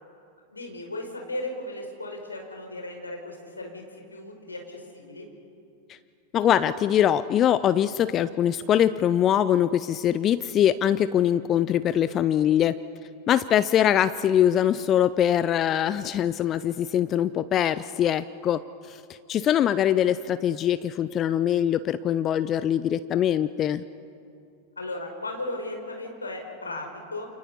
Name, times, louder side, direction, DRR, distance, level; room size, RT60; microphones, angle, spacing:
voice 1, 0.5-3.8 4.1-5.3 24.8-27.3, left 2 dB, 80° left, 2 dB, 5.1 m, -36 dB
voice 2, 6.3-12.7 13.3-18.6 18.9-19.0 19.3-23.8, left 10 dB, 30° left, 15 dB, 0.6 m, -23 dB
29.5 x 28.5 x 5.6 m, 2.5 s
figure-of-eight pair, 90°, 0 cm